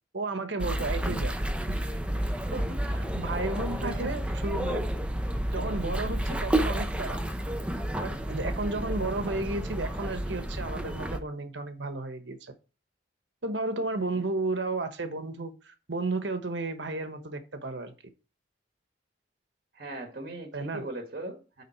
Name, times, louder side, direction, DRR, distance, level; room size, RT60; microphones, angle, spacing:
voice 1, 0.1-1.3 1.7-2.0 2.4-4.9 5.5-7.2 8.0-12.5 13.4-17.9 20.5-20.8, right 2 dB, 85° right, 1.1 m, -33 dB
sound 1, 0.6-11.2, right 1 dB, 5° right, 0.6 m, -30 dB
voice 2, 3.5-4.2 14.0-14.2 19.7-21.6, right 1 dB, 55° right, 1.9 m, -40 dB
9.4 x 3.7 x 4.5 m
head